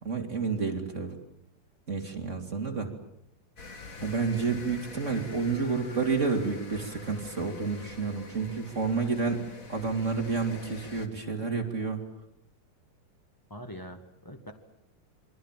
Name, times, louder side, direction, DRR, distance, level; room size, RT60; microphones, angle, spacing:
voice 1, 0.0-1.2 1.9-2.9 4.0-9.4 9.7-12.0, right 4 dB, 20° right, 3 dB, 2.9 m, -30 dB
sound 1, 3.6-11.1, left 3 dB, 30° left, 1.9 m, -46 dB
voice 2, 13.5-14.5, equal, 10° left, 7 dB, 1.0 m, -44 dB
28.0 x 23.5 x 7.6 m, 0.74 s
omnidirectional pair, 3.9 m